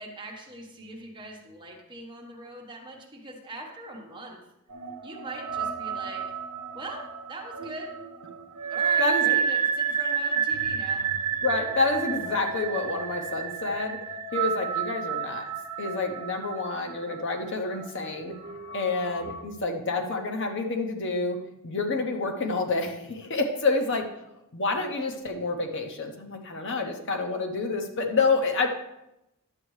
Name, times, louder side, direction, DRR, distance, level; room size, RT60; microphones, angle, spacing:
voice 1, 0.0-4.4 5.0-6.2 6.7-7.9 8.7-11.1, right 2 dB, 20° right, 0 dB, 1.2 m, -41 dB
sound 1, 4.7-19.4, right 7 dB, 85° right, 0.9 m, -30 dB
voice 2, 9.0-9.4 11.4-14.0 14.3-15.4 15.8-18.3 18.7-21.4 21.6-24.1 24.5-28.7, left 3 dB, 55° left, 4 dB, 0.8 m, -28 dB
10.5 x 7.5 x 3.2 m, 0.89 s
head